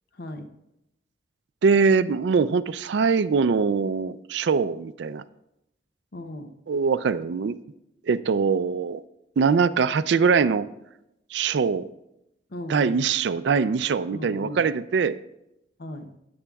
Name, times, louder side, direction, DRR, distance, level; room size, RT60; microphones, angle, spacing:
voice 1, 0.1-0.5 6.1-6.5 12.5-13.0 14.1-14.6 15.8-16.1, left 1 dB, 55° left, 7 dB, 0.7 m, -37 dB
voice 2, 1.6-5.2 6.7-7.6 8.1-9.0 9.4-10.7 11.3-11.9 12.7-15.2, right 5 dB, 70° right, 13 dB, 0.4 m, -22 dB
16.5 x 8.5 x 2.3 m, 0.85 s
head